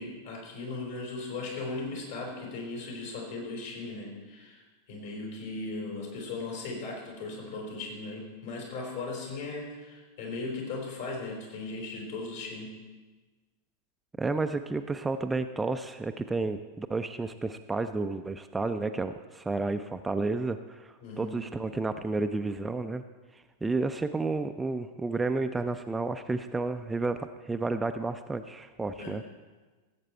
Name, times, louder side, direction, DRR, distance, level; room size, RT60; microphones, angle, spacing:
voice 1, 0.0-4.6 4.9-12.7 21.0-21.4 29.0-29.2, left 3 dB, 60° left, -1 dB, 4.2 m, -37 dB
voice 2, 14.2-23.0 23.3-29.2, right 3 dB, 10° right, 8 dB, 0.4 m, -31 dB
15.5 x 8.3 x 4.4 m, 1.3 s
figure-of-eight pair, 90°, 0 cm